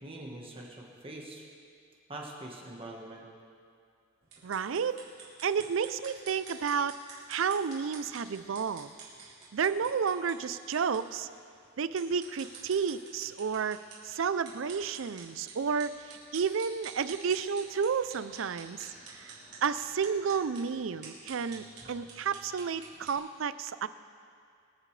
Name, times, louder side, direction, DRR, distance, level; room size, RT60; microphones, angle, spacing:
voice 1, 0.0-1.4 2.1-3.3, right 1 dB, 30° right, -2 dB, 1.4 m, -43 dB
sound 1, 4.2-23.2, right 4 dB, 55° right, 4.0 m, -50 dB
voice 2, 4.4-5.0 5.4-7.0 7.3-8.9 9.5-11.3 11.8-13.8 14.0-19.3 19.6-23.9, right 6 dB, 80° right, 14 dB, 0.5 m, -31 dB
25.5 x 9.0 x 3.3 m, 2.3 s
head